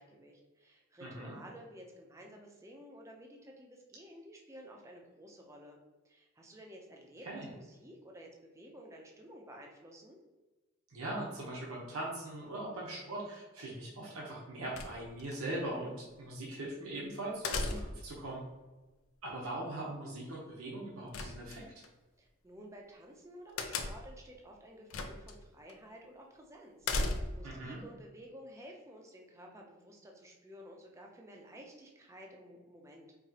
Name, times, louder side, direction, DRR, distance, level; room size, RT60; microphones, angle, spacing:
voice 1, 0.0-10.2 22.2-33.2, equal, 15° right, 0 dB, 0.5 m, -53 dB
voice 2, 1.0-1.4 7.2-7.5 10.9-18.4 19.2-21.8 27.4-27.8, right 1 dB, 85° right, -4 dB, 0.9 m, -41 dB
sound 1, 14.7-15.4 17.4-18.1 21.1-21.9 23.6-24.2 24.9-25.3 25.7-25.8 26.8-27.5, left 3 dB, 75° left, 0.5 m, -36 dB
4.8 x 2.9 x 2.8 m, 1.2 s
head